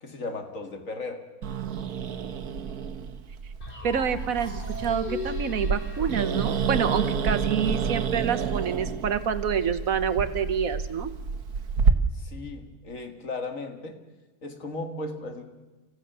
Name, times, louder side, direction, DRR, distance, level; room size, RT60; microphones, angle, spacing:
voice 1, 0.0-1.2 12.1-14.0 14.4-15.4, left 2 dB, 65° left, 6 dB, 2.4 m, -36 dB
Growling, 1.4-11.9, right 6 dB, 90° right, 1.6 m, -29 dB
sound 1, 3.6-7.6, left 4 dB, 35° left, 3.3 m, -39 dB
voice 2, 3.8-11.1, right 7 dB, 70° right, 11 dB, 1.5 m, -27 dB
29.5 x 14.5 x 6.9 m, 1.2 s
omnidirectional pair, 1.5 m